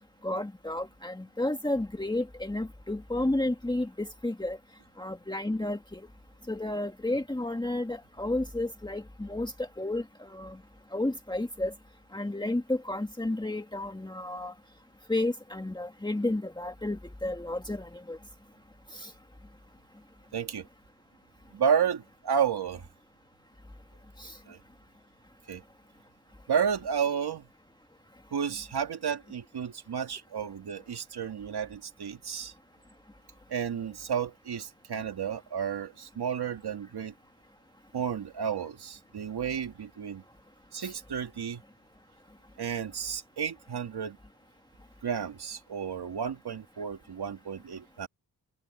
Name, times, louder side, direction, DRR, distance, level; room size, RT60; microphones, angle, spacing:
voice 1, 0.2-4.6 5.0-6.0 6.5-10.6 10.9-11.7 12.1-14.5 15.1-18.2 18.9-19.1 24.2-24.4 40.8-40.9, left 1 dB, 10° left, 1.8 m, -32 dB
voice 2, 20.3-20.7 21.5-22.9 24.5-24.6 25.5-25.6 26.5-27.5 28.3-32.5 33.5-37.1 37.9-40.2 40.7-41.6 42.6-44.2 45.0-48.1, right 7 dB, 80° right, 2.4 m, -32 dB
cardioid pair, 80°, 38 cm